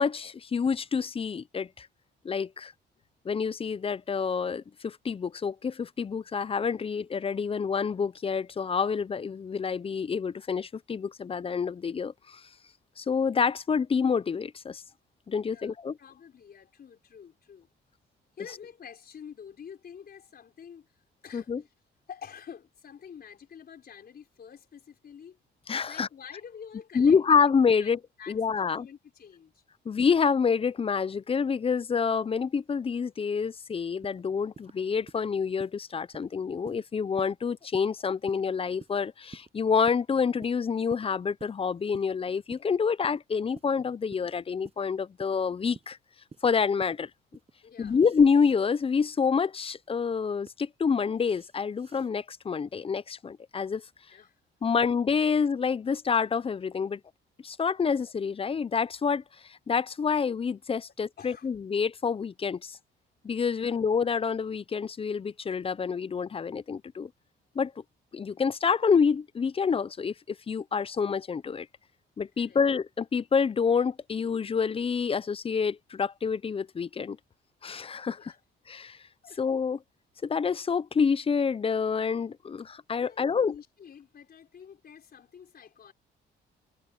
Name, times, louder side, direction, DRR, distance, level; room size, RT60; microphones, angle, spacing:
voice 1, 0.0-1.9 2.2-2.7 3.3-12.4 13.0-14.8 15.3-16.0 21.3-21.6 25.7-26.1 26.9-28.0 28.3-28.9 29.9-46.0 46.4-47.1 47.8-53.8 54.6-57.0 57.4-59.2 59.5-62.8 63.2-67.1 67.6-67.7 68.1-71.7 72.2-77.2 77.6-78.3 78.7-79.0 79.4-79.8 80.2-83.5, left 6 dB, 30° left, 0.5 m, -27 dB
voice 2, 15.5-17.7 18.3-21.7 22.1-25.4 25.9-27.2 27.8-29.6 47.6-48.0 54.1-54.4 54.7-54.8 61.2-61.5 63.6-63.8 72.4-72.6 78.1-78.4 79.2-79.4 83.0-85.9, left 7 dB, 50° left, 4.2 m, -48 dB
sound 1, 34.0-34.2 34.5-34.8 35.1-35.3 35.6-35.8 36.1-36.3 36.6-36.8 37.2-37.4 37.7-37.9 38.3-38.4 38.8-39.0 39.3-39.5 39.9-40.0 40.4-40.6 40.9-41.1 41.4-41.6 41.9-42.1 42.5-42.7 43.0-43.2 43.5-43.7 44.1-44.3 44.6-44.8 45.2-45.4 45.7-45.9 46.3-46.5 46.8-47.0 47.3-47.5 47.9-48.6 50.0-50.5 51.2-52.1, right 4 dB, 30° right, 7.9 m, -49 dB
cardioid pair, 90°, 20 cm